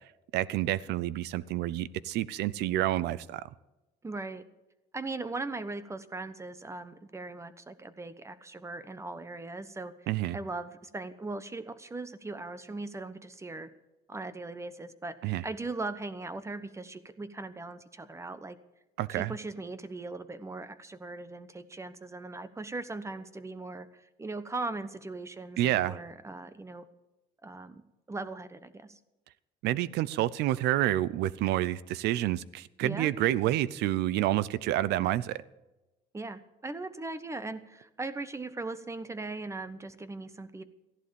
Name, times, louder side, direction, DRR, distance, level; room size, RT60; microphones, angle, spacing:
voice 1, 0.3-3.5 10.1-10.4 15.2-15.4 19.0-19.3 25.6-26.0 29.6-35.4, right 14 dB, 85° right, 20 dB, 0.6 m, -28 dB
voice 2, 4.0-4.4 4.9-9.9 10.3-13.7 14.1-18.6 19.1-26.9 27.4-27.8 28.1-29.0 32.8-33.1 36.1-40.6, right 3 dB, 15° right, 13 dB, 1.1 m, -39 dB
14.5 x 11.5 x 7.0 m, 1.0 s
cardioid pair, 110°, 17 cm